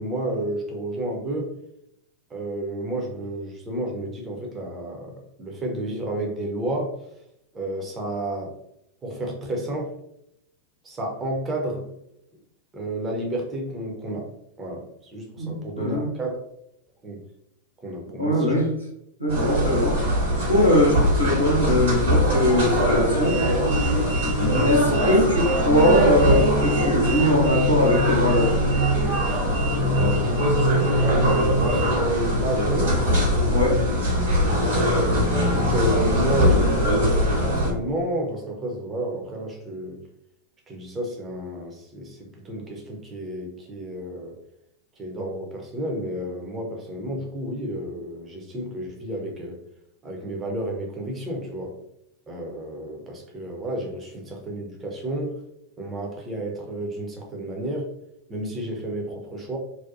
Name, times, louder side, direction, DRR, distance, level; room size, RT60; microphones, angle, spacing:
voice 1, 0.0-1.5 2.3-7.0 7.5-8.6 9.0-9.9 10.8-12.0 12.7-14.3 14.6-16.4 17.0-17.2 17.8-18.5 19.6-19.8 24.5-24.7 31.0-33.1 35.3-40.0 40.7-44.4 45.0-49.6 50.0-51.8 52.3-55.4 55.8-57.9 58.3-59.6, right 1 dB, 20° right, 0.6 m, -31 dB
voice 2, 15.4-16.1 18.2-18.7 19.2-20.2 20.5-23.4 24.6-28.5 33.5-33.8, left 1 dB, 90° left, 0.7 m, -21 dB
sound 1, 19.3-37.7, equal, 60° right, 1.3 m, -21 dB
2.7 x 2.2 x 2.5 m
figure-of-eight pair, 90°, 0 cm